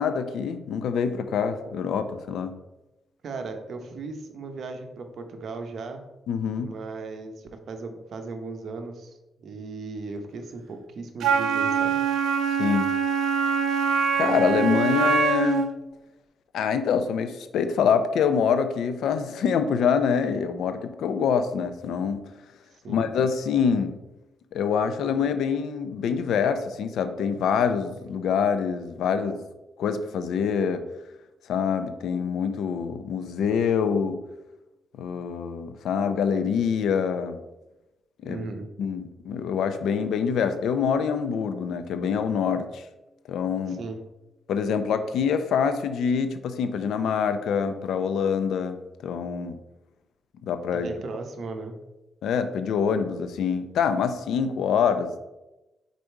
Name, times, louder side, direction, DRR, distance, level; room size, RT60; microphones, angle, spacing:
voice 1, 0.0-2.5 6.3-6.7 12.6-12.9 14.2-15.7 16.5-22.2 22.9-24.0 24.5-29.4 29.8-30.8 31.5-34.2 35.0-37.4 38.2-38.4 38.8-42.8 43.3-43.8 44.5-49.6 50.4-50.9 52.2-55.2, left 6 dB, 85° left, 10 dB, 0.5 m, -25 dB
voice 2, 3.2-6.0 6.6-12.0 22.8-23.1 38.2-38.7 43.7-44.0 50.7-51.7, right 3 dB, 60° right, 6 dB, 0.8 m, -37 dB
Wind instrument woodwind instrument, 11.2-15.7, right 6 dB, 85° right, 0.5 m, -24 dB
5.0 x 4.1 x 4.6 m, 0.98 s
cardioid pair, 120°, 0 cm